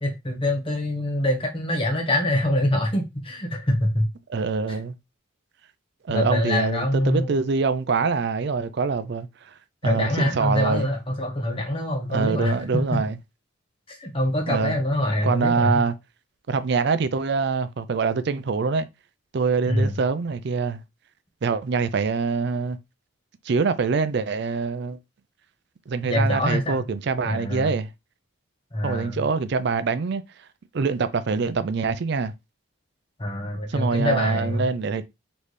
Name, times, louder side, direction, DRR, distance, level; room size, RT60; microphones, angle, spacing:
voice 1, 0.0-4.1 4.7-4.8 6.1-7.4 9.8-13.0 13.9-15.8 19.7-19.9 26.0-26.8 27.2-27.7 28.7-29.2 33.2-34.7, left 1 dB, 25° left, 1.0 m, -24 dB
voice 2, 4.3-4.9 6.1-9.3 9.8-10.9 12.1-13.2 14.5-14.8 15.2-15.9 16.5-18.9 19.3-20.8 21.4-22.8 23.5-25.0 25.9-27.9 28.8-30.2 30.7-32.3 33.7-35.0, right 4 dB, 55° right, 0.4 m, -24 dB
4.1 x 3.3 x 3.2 m
head